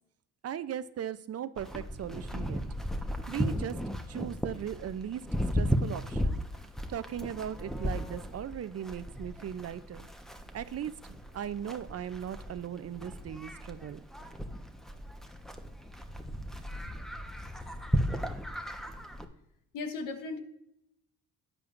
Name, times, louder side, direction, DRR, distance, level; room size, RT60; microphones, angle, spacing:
voice 1, 0.4-2.6 3.3-3.8 4.1-5.2 5.5-6.4 6.9-10.1 10.5-14.0, right 9 dB, 50° right, 14 dB, 0.6 m, -38 dB
Livestock farm animals working animals, 1.6-19.2, equal, ahead, 1.1 m, -35 dB
voice 2, 19.7-20.4, left 3 dB, 75° left, 7 dB, 1.4 m, -36 dB
13.0 x 9.2 x 2.6 m, 0.77 s
supercardioid pair, 70°, 32 cm